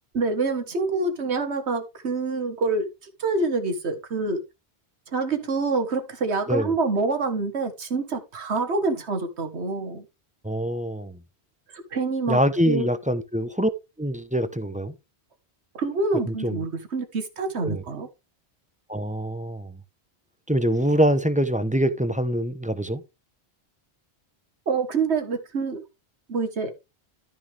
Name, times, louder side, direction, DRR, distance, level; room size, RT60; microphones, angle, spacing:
voice 1, 0.1-2.9 3.2-4.4 5.1-10.1 11.9-12.4 12.7-12.9 15.7-18.1 24.7-25.8 26.3-26.7, right 3 dB, 80° right, 1.8 m, -26 dB
voice 2, 10.4-11.2 12.3-13.7 14.0-14.9 16.3-16.7 17.6-17.8 18.9-19.8 20.5-23.0, equal, 10° right, 0.8 m, -24 dB
12.5 x 6.2 x 3.4 m
omnidirectional pair, 1.1 m